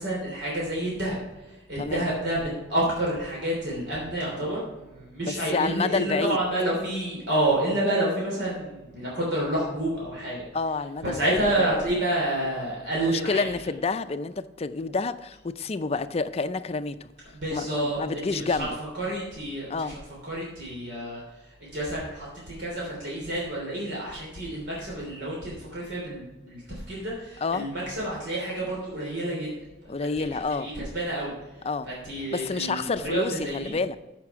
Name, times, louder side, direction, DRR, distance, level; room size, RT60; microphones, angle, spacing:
voice 1, 0.0-10.5 11.0-13.5 17.3-18.0 18.3-29.5 30.0-31.3 31.9-33.7, right 1 dB, 70° right, -4 dB, 3.2 m, -29 dB
voice 2, 5.2-6.4 10.5-11.9 12.9-17.1 17.5-18.7 19.7-20.0 27.4-27.7 29.9-30.7 31.6-31.9 32.3-34.0, left 4 dB, 35° left, 12 dB, 0.5 m, -29 dB
13.5 x 5.9 x 4.8 m, 1.1 s
head